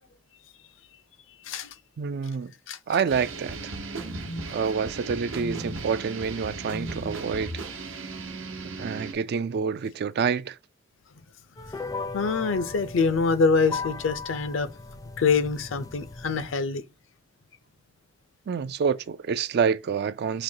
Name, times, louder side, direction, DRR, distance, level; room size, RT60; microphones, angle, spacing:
voice 1, 1.4-1.7 2.7-2.8 12.1-14.7 15.2-16.8, left 4 dB, 70° left, 0.5 m, -25 dB
voice 2, 2.0-2.5 2.9-3.6 4.5-7.5 8.8-10.6 18.5-20.4, right 6 dB, 55° right, 0.4 m, -27 dB
sound 1, 3.1-9.1, right 2 dB, 75° right, 0.9 m, -36 dB
sound 2, 11.6-16.5, left 3 dB, 20° left, 0.4 m, -37 dB
5.1 x 2.9 x 2.7 m
head